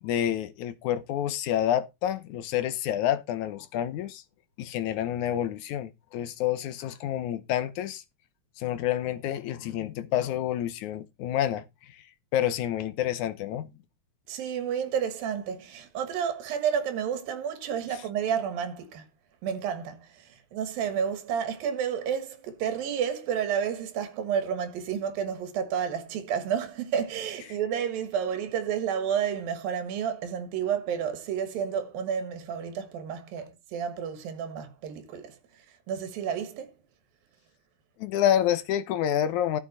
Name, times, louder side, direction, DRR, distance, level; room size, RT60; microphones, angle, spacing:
voice 1, 0.0-4.2 4.6-8.0 8.6-11.6 11.9-12.0 12.3-13.7 17.9-18.0 38.0-39.6, left 11 dB, 70° left, 2.1 m, -28 dB
voice 2, 14.3-19.0 19.4-20.1 20.5-35.4 35.9-36.7, right 8 dB, 85° right, 3.3 m, -30 dB
12.5 x 7.3 x 4.2 m
omnidirectional pair, 4.0 m